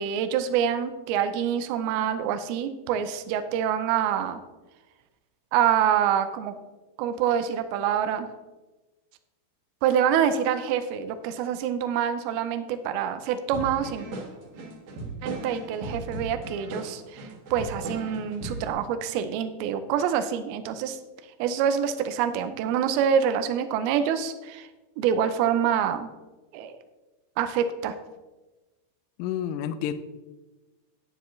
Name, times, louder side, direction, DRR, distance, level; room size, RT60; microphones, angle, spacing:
voice 1, 0.0-4.4 5.5-6.6 7.0-8.3 9.8-14.1 15.2-21.0 21.4-24.7 25.0-26.1 26.5-26.7 27.4-27.9, right 8 dB, 80° right, 10 dB, 2.4 m, -26 dB
sound 1, 13.5-18.7, right 2 dB, 55° right, 2.7 m, -37 dB
voice 2, 29.2-29.9, left 10 dB, 85° left, 11 dB, 2.0 m, -29 dB
9.8 x 9.3 x 3.1 m, 1.1 s
omnidirectional pair, 4.5 m